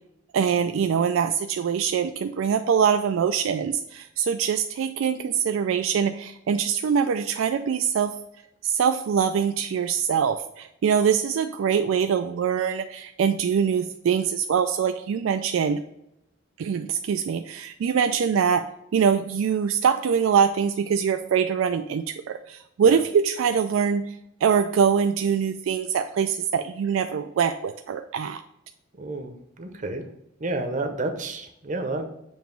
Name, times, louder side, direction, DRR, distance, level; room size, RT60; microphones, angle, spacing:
voice 1, 0.3-8.1 8.6-15.8 16.6-18.6 18.9-28.4, right 7 dB, 75° right, 7 dB, 0.3 m, -23 dB
voice 2, 29.0-29.3 29.6-30.0 30.4-32.1, right 2 dB, 40° right, 6 dB, 0.7 m, -30 dB
7.1 x 3.0 x 4.5 m, 0.81 s
head